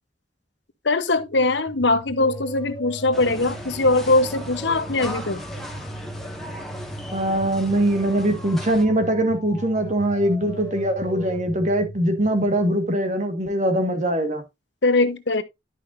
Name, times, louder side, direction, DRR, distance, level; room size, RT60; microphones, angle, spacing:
voice 1, 0.8-5.4 14.8-15.4, left 2 dB, 80° left, 1.1 m, -21 dB
sound 1, 1.2-13.0, right 1 dB, 20° left, 2.6 m, -38 dB
sound 2, 3.1-8.9, equal, ahead, 1.8 m, -37 dB
voice 2, 7.1-14.4, right 1 dB, 45° right, 1.9 m, -22 dB
11.0 x 5.9 x 2.7 m
head